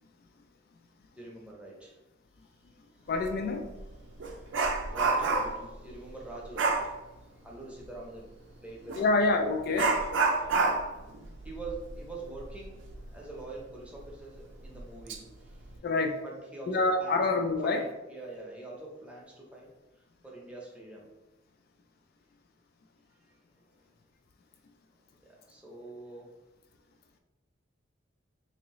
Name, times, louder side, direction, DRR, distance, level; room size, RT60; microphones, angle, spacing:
voice 1, 1.2-2.0 2.9-3.1 4.8-6.9 7.4-8.3 8.6-9.1 10.3-10.6 11.4-15.7 16.2-17.2 17.6-17.8 18.1-19.7 19.9-21.1 23.3-23.4 25.2-26.3, right 2 dB, 5° right, -3 dB, 0.7 m, -44 dB
voice 2, 3.1-3.7 9.0-10.0 15.8-16.2 16.7-17.8, left 3 dB, 50° left, 4 dB, 0.3 m, -27 dB
Dog, 3.2-3.3 3.8-5.7 6.5-6.9 8.9-9.0 9.7-13.0 13.4-13.5 14.0-14.1 14.7-15.2 15.5-15.8, right 4 dB, 75° right, 0.4 m, -29 dB
3.8 x 2.7 x 3.0 m, 1.1 s
head